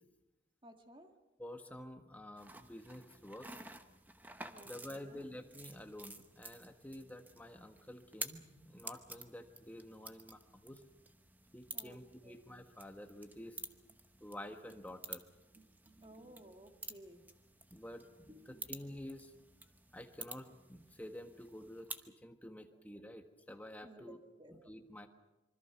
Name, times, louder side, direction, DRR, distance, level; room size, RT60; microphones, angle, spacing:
voice 1, 0.6-1.1 4.4-5.3 11.7-12.4 15.5-17.2 18.3-18.7 23.8-24.7, right 1 dB, 25° right, 5 dB, 1.7 m, -57 dB
voice 2, 1.4-3.5 4.6-10.8 11.5-13.6 14.2-15.2 17.7-19.3 19.9-24.2 24.5-25.1, left 1 dB, 10° left, 5 dB, 1.4 m, -50 dB
sound 1, 2.4-22.1, right 3 dB, 10° right, 0.9 m, -51 dB
26.0 x 24.0 x 5.9 m, 1.0 s
head